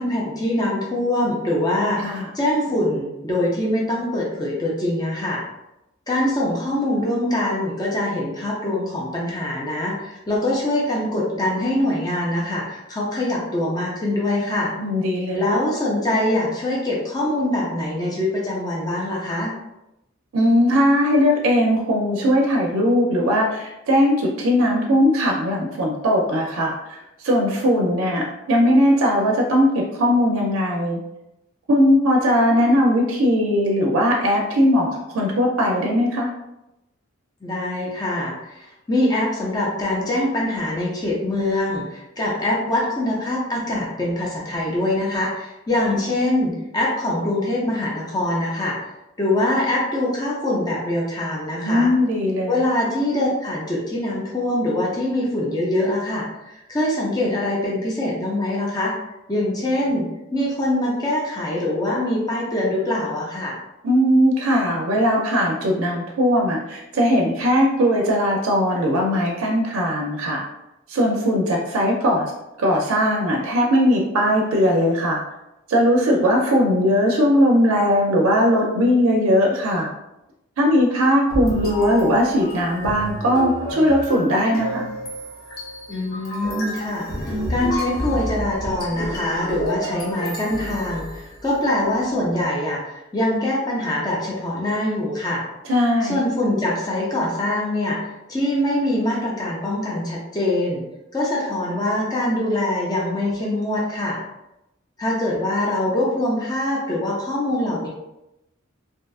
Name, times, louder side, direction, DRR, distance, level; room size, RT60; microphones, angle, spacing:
voice 1, 0.0-5.4 6.1-14.7 15.3-19.5 37.4-48.9 49.2-51.9 52.5-58.9 59.3-63.6 85.9-95.4 96.0-100.8 101.1-104.2 105.0-107.9, left 1 dB, 20° left, -4 dB, 0.4 m, -23 dB
voice 2, 14.8-15.4 20.3-31.0 31.7-34.9 35.1-36.3 51.6-52.6 63.8-70.4 70.9-72.3 72.6-75.2 75.7-79.9 80.6-84.9 95.6-96.2, equal, 85° right, -1 dB, 0.4 m, -19 dB
sound 1, 81.3-91.6, equal, 45° left, 0.7 m, -30 dB
2.6 x 2.3 x 2.3 m, 0.91 s
head